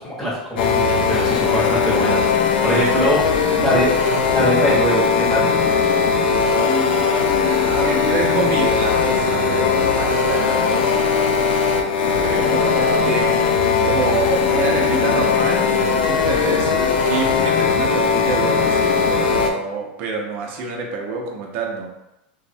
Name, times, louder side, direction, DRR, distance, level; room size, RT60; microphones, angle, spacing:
voice 1, 0.0-3.9 4.3-5.5, equal, ahead, -10 dB, 0.8 m, -22 dB
sound 1, 0.6-19.5, left 5 dB, 90° left, 0.3 m, -19 dB
voice 2, 6.6-15.7 16.0-21.9, right 4 dB, 40° right, 1 dB, 0.5 m, -27 dB
3.0 x 2.0 x 2.6 m, 0.90 s
supercardioid pair, 160°, 5 cm